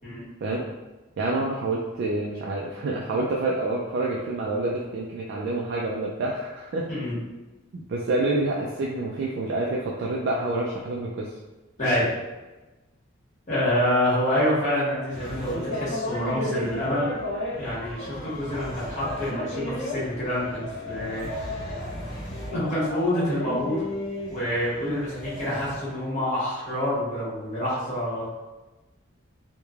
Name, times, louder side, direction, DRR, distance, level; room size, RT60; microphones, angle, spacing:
voice 1, 1.2-6.9 7.7-11.3, right 2 dB, 55° right, -2 dB, 0.3 m, -27 dB
voice 2, 11.8-12.1 13.5-17.1 17.6-21.9 22.5-23.8 24.3-28.3, left 1 dB, 35° left, -9 dB, 1.2 m, -27 dB
sound 1, 15.1-25.9, left 1 dB, 60° left, 1.0 m, -33 dB
3.0 x 2.1 x 2.4 m, 1.1 s
head